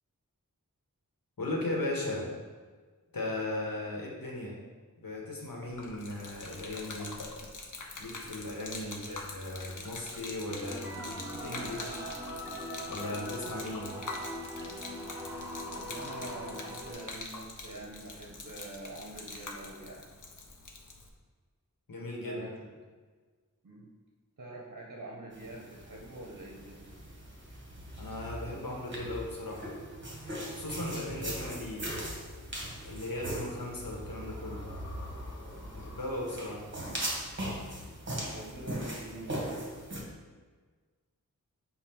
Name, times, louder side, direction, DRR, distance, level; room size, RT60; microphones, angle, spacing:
voice 1, 1.4-2.3 3.1-4.6 5.0-7.2 8.0-12.1 12.9-14.0 21.9-22.4 28.0-29.8 30.5-31.9 32.8-34.7 35.7-36.6, left 1 dB, 80° left, -2 dB, 1.0 m, -37 dB
Gurgling / Liquid, 5.6-21.1, left 3 dB, 65° left, 0.6 m, -44 dB
voice 2, 8.8-9.2 11.5-11.7 15.7-20.0 22.2-22.5 23.6-23.9 24.4-26.9 38.2-39.6, right 2 dB, 55° right, -3 dB, 0.7 m, -45 dB
sound 1, 10.6-16.9, equal, 5° right, 0.8 m, -41 dB
sound 2, 25.3-40.0, equal, 35° right, 1.0 m, -40 dB
5.3 x 2.2 x 4.3 m, 1.5 s
wide cardioid pair, 45°, 34 cm